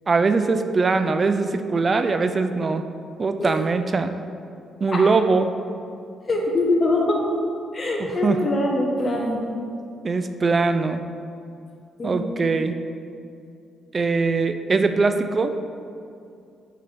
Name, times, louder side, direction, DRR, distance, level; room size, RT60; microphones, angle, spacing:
voice 1, 0.1-2.8 3.2-4.1 4.8-5.5 8.2-8.4 10.0-11.0 12.0-12.8 13.9-15.6, right 4 dB, 35° right, 8 dB, 0.4 m, -21 dB
voice 2, 6.2-7.2 7.7-9.4 12.0-12.3, left 2 dB, 35° left, -1 dB, 1.2 m, -23 dB
6.6 x 5.6 x 3.4 m, 2.5 s
cardioid pair, 90°, 0 cm